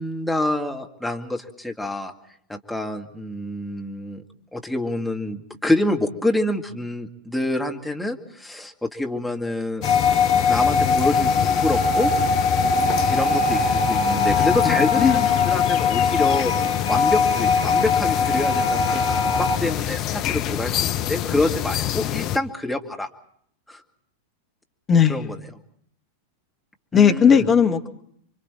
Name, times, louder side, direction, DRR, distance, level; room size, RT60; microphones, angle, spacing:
voice 1, 0.0-2.1 2.5-4.2 4.5-9.8 10.5-12.1 13.1-16.5 16.9-23.1 23.7-23.8 25.1-25.4 26.9-27.5, left 1 dB, 5° left, 2 dB, 2.1 m, -27 dB
sound 1, 9.8-19.6, left 4 dB, 70° left, 2.9 m, -21 dB
sound 2, 9.8-22.4, left 11 dB, 40° left, 0.9 m, -26 dB
voice 2, 14.4-15.3 24.9-25.3 26.9-27.9, left 7 dB, 25° left, 5 dB, 2.0 m, -18 dB
29.0 x 24.5 x 4.3 m, 0.65 s
figure-of-eight pair, 90°, 0 cm